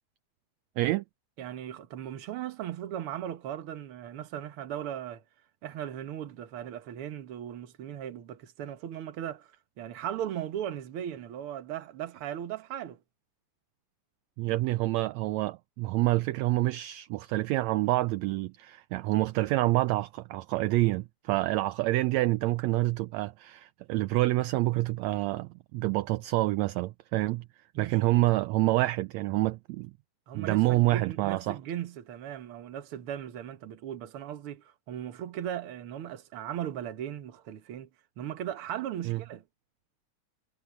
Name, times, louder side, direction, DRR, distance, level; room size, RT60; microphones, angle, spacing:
voice 1, 1.4-5.2 5.6-9.5 9.8-13.0 27.7-28.2 30.3-37.9 38.2-39.4, right 10 dB, 55° right, 1.8 m, -37 dB
voice 2, 14.4-27.4 27.8-29.9 30.3-31.6 39.0-39.2, right 18 dB, 80° right, 1.7 m, -27 dB
omnidirectional pair, 3.5 m